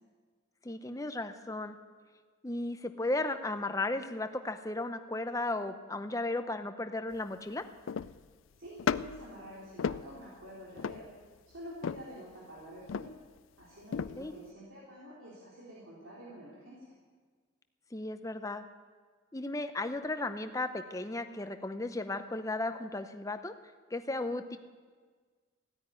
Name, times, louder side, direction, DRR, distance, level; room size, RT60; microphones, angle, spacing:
voice 1, 0.6-1.8 2.4-7.6 14.2-14.3 17.9-18.6 19.3-23.5 23.9-24.6, left 2 dB, 15° left, 9 dB, 0.7 m, -35 dB
sound 1, 7.1-7.2 7.9-8.3 8.8-9.3 9.8-10.4 10.8-11.3 11.8-12.2 12.9-13.4 13.9-14.3, left 6 dB, 85° left, 0.4 m, -35 dB
voice 2, 8.6-11.1 11.5-13.1 13.6-16.9, equal, 85° right, -7 dB, 3.6 m, -48 dB
15.5 x 9.5 x 9.4 m, 1.5 s
head